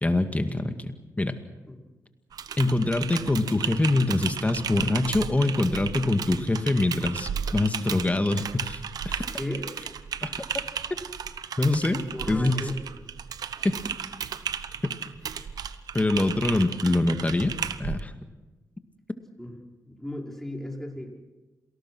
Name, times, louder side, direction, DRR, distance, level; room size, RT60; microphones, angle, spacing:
voice 1, 0.0-0.9 1.2-1.4 2.6-9.3 10.2-10.5 11.6-12.0 12.3-12.6 13.6-13.8 14.8-14.9 15.9-17.5 17.8-18.1, left 2 dB, 20° left, 8 dB, 2.1 m, -24 dB
Typing, 2.3-18.0, right 7 dB, 85° right, 0.9 m, -34 dB
voice 2, 9.3-9.7 11.9-12.8 19.4-19.6 19.8-21.1, left 1 dB, 5° left, 0 dB, 5.1 m, -35 dB
27.0 x 19.0 x 6.3 m, 1.2 s
cardioid pair, 60°, 6 cm